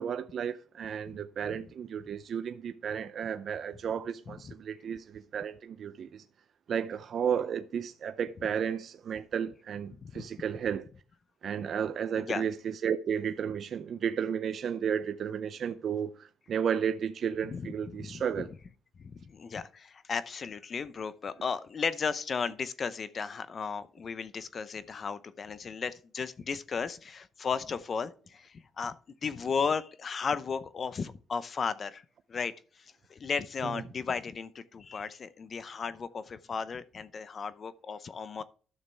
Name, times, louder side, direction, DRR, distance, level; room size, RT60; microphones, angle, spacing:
voice 1, 0.0-6.2 6.7-10.9 11.4-18.5 33.6-33.8, right 8 dB, 60° right, 0.6 m, -33 dB
voice 2, 18.0-18.5 19.0-28.9 29.2-32.0 32.3-38.4, left 5 dB, 45° left, 0.7 m, -35 dB
12.0 x 6.5 x 3.4 m
cardioid pair, 90°, 0 cm